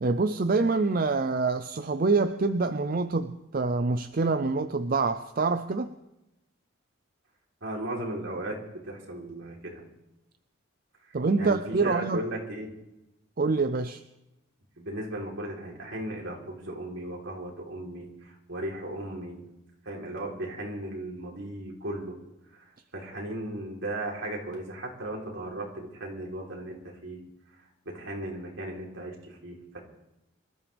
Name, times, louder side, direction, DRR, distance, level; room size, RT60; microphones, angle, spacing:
voice 1, 0.0-5.9 11.1-12.2 13.4-14.0, right 3 dB, 45° right, 9 dB, 0.5 m, -26 dB
voice 2, 7.6-9.8 11.1-12.7 14.8-19.5 19.8-22.2 22.5-27.2 27.9-29.8, right 1 dB, 70° right, -2 dB, 3.7 m, -36 dB
25.5 x 13.0 x 3.5 m, 0.93 s
head